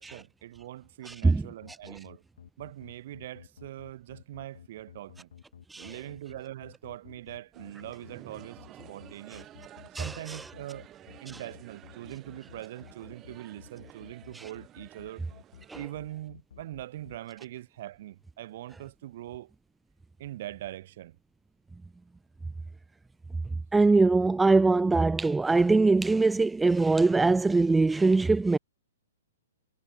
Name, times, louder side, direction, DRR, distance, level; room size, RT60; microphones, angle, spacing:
voice 1, 0.0-2.2 2.6-5.3 5.8-9.5 9.9-10.8 11.2-15.2 15.7-19.5 20.2-21.2, right 14 dB, 50° right, 3.1 m, -42 dB
voice 2, 1.1-1.5 1.9-2.0 5.7-6.0 9.3-9.4 9.9-10.4 11.3-11.4 14.3-14.5 15.7-15.8 23.7-28.6, right 3 dB, 5° right, 0.3 m, -23 dB
sound 1, 1.6-17.2, left 8 dB, 65° left, 6.2 m, -51 dB
sound 2, 7.5-15.8, right 12 dB, 25° right, 5.3 m, -52 dB
figure-of-eight pair, 115°, 0 cm